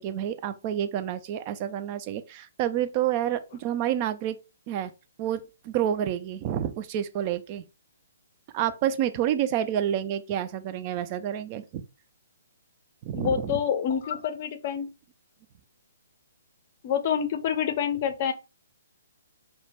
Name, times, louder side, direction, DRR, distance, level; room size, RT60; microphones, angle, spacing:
voice 1, 0.0-4.4 4.7-4.9 5.2-7.6 8.5-11.8 13.0-13.6, right 10 dB, 30° right, 0.3 m, -29 dB
voice 2, 13.1-14.9 16.8-18.3, left 8 dB, 40° left, 0.5 m, -27 dB
2.2 x 2.1 x 3.2 m
figure-of-eight pair, 130°, 0 cm